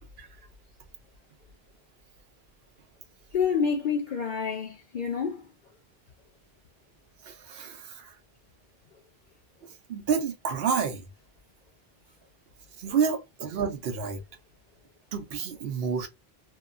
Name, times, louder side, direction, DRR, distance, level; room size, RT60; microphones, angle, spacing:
voice 1, 3.3-5.4, left 6 dB, 55° left, 0.6 m, -28 dB
voice 2, 7.3-8.1 9.9-11.0 12.8-14.2 15.1-16.1, right 6 dB, 70° right, 0.9 m, -29 dB
2.8 x 2.2 x 2.3 m
omnidirectional pair, 1.1 m